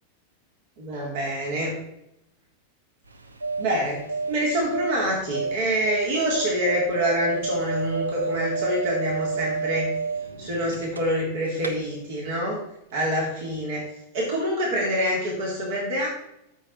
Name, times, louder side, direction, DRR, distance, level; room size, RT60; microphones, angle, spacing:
voice 1, 0.8-1.8 3.6-4.0 4.3-9.9 10.4-12.6 12.9-13.8 14.1-16.1, equal, 50° right, -3 dB, 3.7 m, -26 dB
sound 1, 3.1-11.3 11.6-11.7, right 4 dB, 75° right, 1.0 m, -30 dB
12.5 x 7.2 x 4.6 m, 0.80 s
figure-of-eight pair, 90°, 0 cm